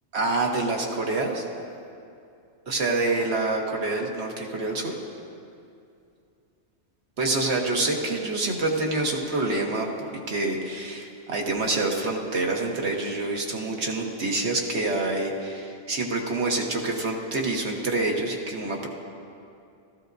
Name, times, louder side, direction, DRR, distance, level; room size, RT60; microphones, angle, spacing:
voice 1, 0.1-1.4 2.7-4.9 7.2-18.9, right 2 dB, 75° right, 0 dB, 1.4 m, -27 dB
15.0 x 14.0 x 2.6 m, 2.5 s
omnidirectional pair, 1.1 m